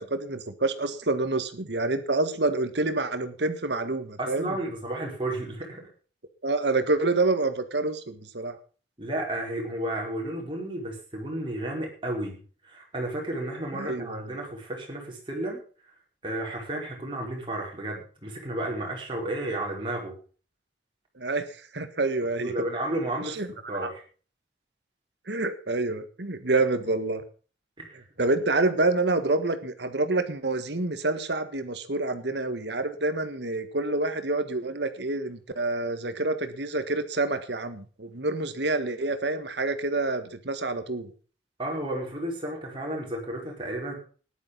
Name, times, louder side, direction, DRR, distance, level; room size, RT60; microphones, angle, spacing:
voice 1, 0.0-4.6 6.4-8.6 13.8-14.3 21.1-21.5 21.7-22.5 23.3-23.5 23.7-23.9 25.3-27.2 28.2-41.1, right 2 dB, 70° right, 10 dB, 1.7 m, -27 dB
voice 2, 4.2-5.9 9.0-15.6 16.2-20.1 22.4-23.4 23.7-24.0 27.8-28.0 41.6-43.9, right 1 dB, 30° right, -1 dB, 5.0 m, -32 dB
14.0 x 11.0 x 5.6 m, 0.40 s
head